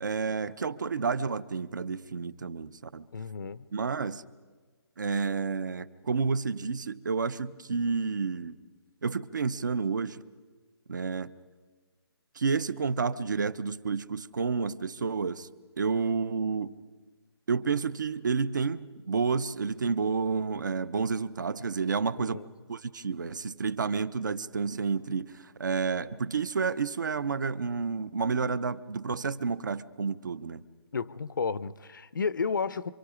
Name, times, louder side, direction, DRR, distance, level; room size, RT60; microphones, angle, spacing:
voice 1, 0.0-3.1 3.7-4.2 5.0-8.6 9.0-10.2 10.9-11.3 12.3-15.5 15.8-16.7 17.5-22.4 22.7-30.6, right 5 dB, 45° right, 0.6 m, -30 dB
voice 2, 3.1-3.7 22.2-22.5 30.9-32.9, left 5 dB, 50° left, 0.6 m, -32 dB
26.5 x 24.0 x 5.0 m
hypercardioid pair, 180°, 14 cm